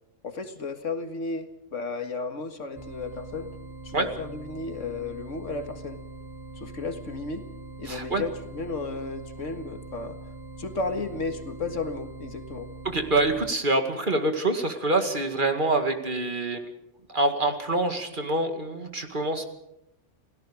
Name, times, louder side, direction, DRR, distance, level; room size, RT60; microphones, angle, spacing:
voice 1, 0.2-3.6 3.8-6.0 6.6-7.4 7.8-10.2 10.6-12.7, left 3 dB, 80° left, 7 dB, 2.1 m, -33 dB
sound 1, 2.8-13.5, right 2 dB, 20° right, 1.1 m, -42 dB
voice 2, 7.9-8.2 12.8-16.7 17.1-19.4, right 2 dB, 40° right, 6 dB, 2.3 m, -26 dB
28.5 x 17.5 x 5.1 m, 0.82 s
omnidirectional pair, 1.3 m